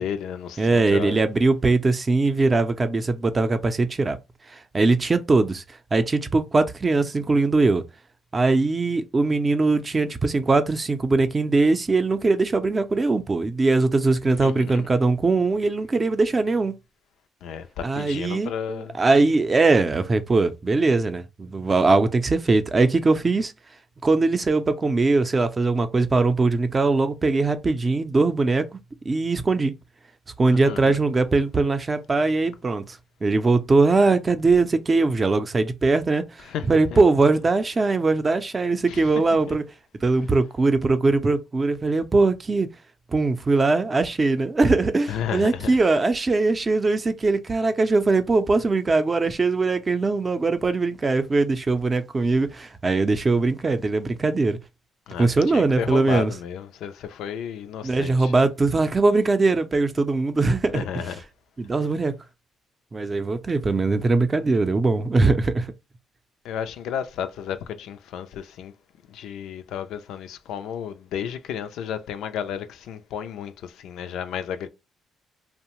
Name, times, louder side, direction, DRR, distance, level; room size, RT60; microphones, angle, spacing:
voice 1, 0.0-1.2 14.4-14.9 17.4-19.0 30.5-31.0 36.5-37.0 38.9-39.1 39.5-39.6 45.1-45.7 55.1-58.3 60.7-61.2 66.4-68.7 69.1-74.7, left 8 dB, 85° left, 0.3 m, -32 dB
voice 2, 0.6-4.2 4.7-5.6 5.9-7.8 8.3-16.8 17.8-23.5 24.0-28.7 29.1-29.7 30.4-36.2 36.7-39.6 40.0-42.7 43.1-54.6 55.2-56.3 57.8-61.1 61.6-62.1 62.9-65.7, right 3 dB, 30° right, 0.4 m, -21 dB
2.7 x 2.1 x 2.9 m
cardioid pair, 90°, 0 cm